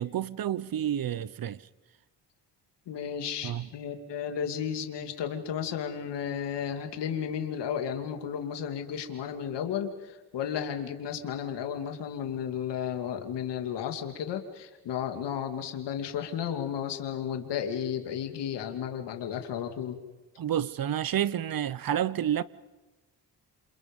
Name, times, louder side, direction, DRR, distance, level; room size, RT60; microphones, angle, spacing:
voice 1, 0.0-1.6 3.4-3.7 20.4-22.4, right 10 dB, 55° right, 1.0 m, -29 dB
voice 2, 2.9-20.0, left 8 dB, 85° left, 2.7 m, -33 dB
29.0 x 28.0 x 5.5 m
cardioid pair, 95°, 41 cm